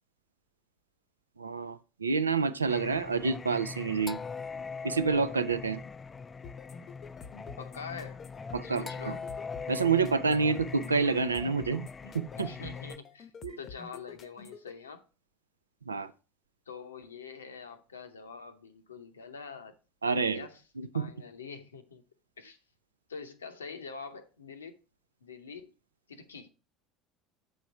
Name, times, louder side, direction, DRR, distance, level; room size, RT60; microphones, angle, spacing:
voice 1, 1.4-4.2 4.8-5.8 8.5-9.1 9.7-11.9 12.1-12.5 13.4-13.6 15.9-16.1 20.0-20.5 20.8-21.1, right 4 dB, 85° right, 0.4 m, -28 dB
Singing, 2.7-13.0, left 5 dB, 25° left, 0.3 m, -41 dB
sound 1, 6.4-14.7, left 6 dB, 40° left, 0.7 m, -48 dB
voice 2, 7.6-8.2 8.6-9.3 12.4-13.3 13.6-15.0 16.7-19.7 20.2-20.6 20.9-22.0 22.4-22.6 23.1-24.8 25.2-25.7 26.1-26.5, left 5 dB, 80° left, 0.7 m, -45 dB
8.0 x 4.2 x 4.7 m
figure-of-eight pair, 70°, 0 cm